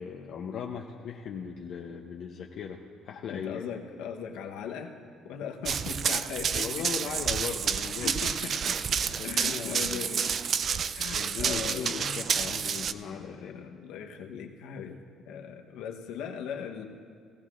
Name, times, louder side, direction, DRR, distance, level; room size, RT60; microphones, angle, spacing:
voice 1, 0.0-3.6 6.6-8.4 9.1-10.1 11.1-13.6, left 7 dB, 65° left, 0 dB, 0.7 m, -38 dB
voice 2, 3.3-4.9 5.2-6.9 8.0-8.8 9.2-10.4 10.9-12.6 13.1-16.8, left 7 dB, 85° left, 3 dB, 1.0 m, -39 dB
Run, 5.7-12.9, right 7 dB, 45° right, 0.3 m, -29 dB
17.5 x 15.5 x 2.5 m, 2.1 s
cardioid pair, 105°, 0 cm